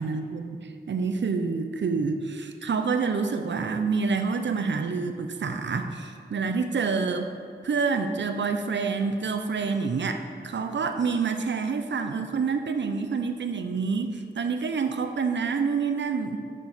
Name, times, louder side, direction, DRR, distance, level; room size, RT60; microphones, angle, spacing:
voice 1, 0.0-7.3 7.6-16.4, right 5 dB, 75° right, 7 dB, 0.5 m, -27 dB
6.7 x 6.1 x 4.2 m, 2.3 s
cardioid pair, 50°, 19 cm